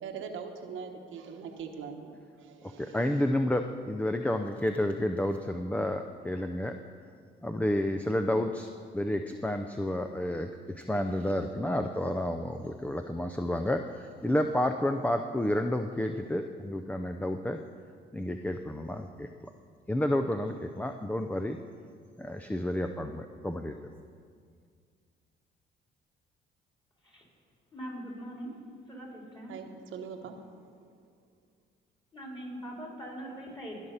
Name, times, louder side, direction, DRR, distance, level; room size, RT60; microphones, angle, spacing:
voice 1, 0.0-2.1 2.4-3.3 29.5-30.9, right 6 dB, 80° right, 4 dB, 1.1 m, -42 dB
voice 2, 2.8-6.8 7.4-8.7 8.9-17.6 18.1-19.3 19.9-21.6 22.2-23.8, left 1 dB, 5° left, 6 dB, 0.5 m, -30 dB
voice 3, 27.7-28.5 28.9-29.6 32.1-33.9, equal, 25° left, -2 dB, 4.2 m, -41 dB
19.5 x 6.6 x 5.7 m, 2.1 s
cardioid pair, 90°, 20 cm